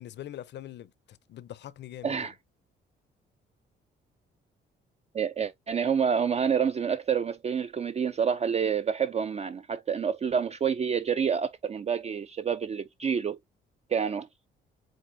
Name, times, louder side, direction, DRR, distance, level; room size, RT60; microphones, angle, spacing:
voice 1, 0.0-2.3, left 12 dB, 60° left, 0.6 m, -43 dB
voice 2, 2.0-2.3 5.1-13.4 13.9-14.3, right 7 dB, 35° right, 0.4 m, -28 dB
7.6 x 2.6 x 2.6 m
cardioid pair, 90°, 20 cm